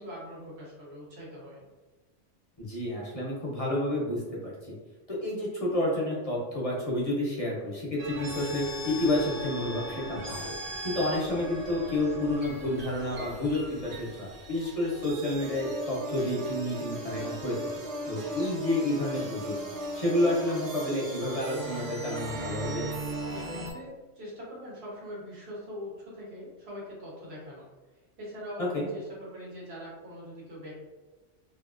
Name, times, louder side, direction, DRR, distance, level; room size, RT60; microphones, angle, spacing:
voice 1, 0.0-1.6 23.3-27.7 28.2-28.7 28.9-30.7, equal, 60° right, -5 dB, 1.3 m, -42 dB
voice 2, 2.6-4.5 5.1-10.6 10.8-17.5 18.0-19.5 19.9-22.9 28.6-28.9, left 1 dB, 35° left, -5 dB, 0.7 m, -30 dB
sound 1, 8.0-23.7, right 1 dB, 90° right, 1.0 m, -38 dB
2.8 x 2.7 x 2.4 m, 1.2 s
omnidirectional pair, 1.3 m